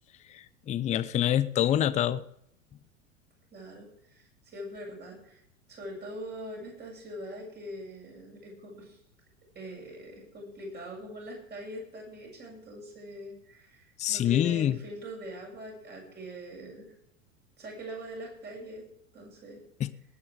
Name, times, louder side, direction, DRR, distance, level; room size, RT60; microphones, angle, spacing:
voice 1, 0.3-2.2 14.0-14.8 19.8-19.9, left 11 dB, 20° left, 15 dB, 0.6 m, -26 dB
voice 2, 3.5-5.4 5.7-9.0 9.5-16.9 17.6-18.9 19.1-19.6, equal, 25° right, 0 dB, 7.9 m, -42 dB
19.0 x 9.8 x 5.0 m, 0.75 s
figure-of-eight pair, 85°, 39 cm